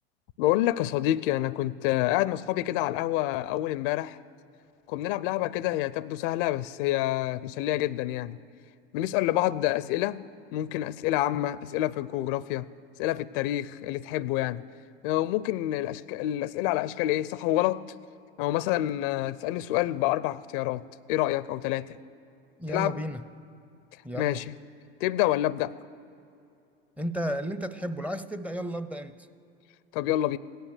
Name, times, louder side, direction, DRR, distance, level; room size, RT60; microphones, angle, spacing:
voice 1, 0.4-4.2 4.9-8.4 8.9-10.2 10.5-12.7 13.0-14.6 15.0-17.8 18.4-21.9 22.7-23.0 24.1-24.5 25.0-25.7 29.9-30.4, left 15 dB, 60° left, 19 dB, 0.5 m, -27 dB
voice 2, 22.6-23.2 24.0-24.4 27.0-29.2, equal, 5° right, 13 dB, 0.6 m, -33 dB
17.5 x 11.5 x 6.6 m, 2.7 s
hypercardioid pair, 80°, 31 cm